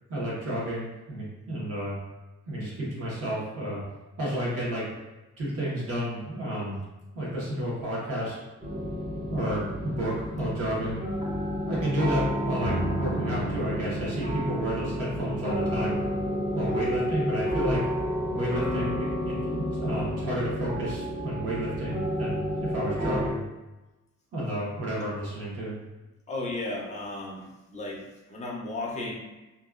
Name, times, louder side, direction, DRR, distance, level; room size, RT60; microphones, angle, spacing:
voice 1, 0.1-2.0 2.5-3.8 4.2-4.9 5.4-6.8 7.1-8.3 9.3-11.0 11.5-16.0 16.5-17.8 18.3-23.4 24.3-25.7, right 1 dB, 50° right, -6 dB, 1.1 m, -31 dB
sound 1, 8.6-23.3, equal, 25° right, 0.6 m, -30 dB
voice 2, 26.3-29.2, left 2 dB, 25° left, -2 dB, 0.5 m, -35 dB
2.8 x 2.3 x 2.4 m, 1.1 s
wide cardioid pair, 165°, 30 cm